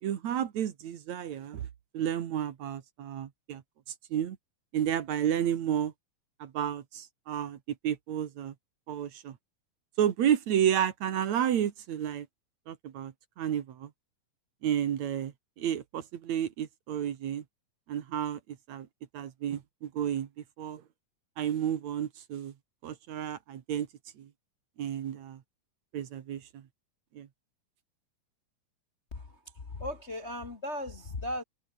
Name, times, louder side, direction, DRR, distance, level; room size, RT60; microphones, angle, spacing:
voice 1, 0.0-1.7 1.9-3.6 4.1-4.4 4.7-5.9 6.4-8.5 8.9-9.4 10.0-12.3 12.7-13.9 14.6-17.4 17.9-18.4 18.7-18.9 19.1-20.3 20.6-20.8 21.4-22.5 22.8-23.9 24.2-24.3 24.8-25.4 25.9-26.6 27.1-27.3, right 10 dB, 65° right, 2.6 m, -31 dB
voice 2, 29.7-31.4, left 1 dB, 30° left, 1.3 m, -36 dB
open air
omnidirectional pair, 3.7 m